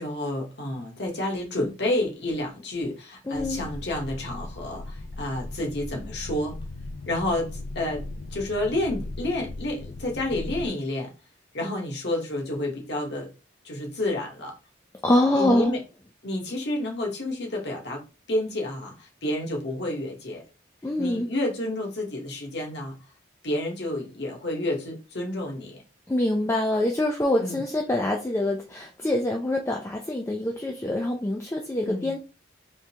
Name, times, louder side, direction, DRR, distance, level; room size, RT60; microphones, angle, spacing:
voice 1, 0.0-6.5 7.1-8.0 8.3-11.1 11.5-13.3 13.6-14.5 15.3-15.8 16.2-18.0 18.3-20.4 21.0-22.9 23.4-25.8 27.4-27.6 31.9-32.1, left 1 dB, 55° left, 0 dB, 1.2 m, -30 dB
sound 1, 3.3-10.7, left 2 dB, 75° left, 0.5 m, -38 dB
voice 2, 3.3-3.6 15.0-15.7 20.8-21.3 26.1-32.2, left 1 dB, 15° left, 1 dB, 0.3 m, -25 dB
3.6 x 3.2 x 2.9 m, 0.31 s
head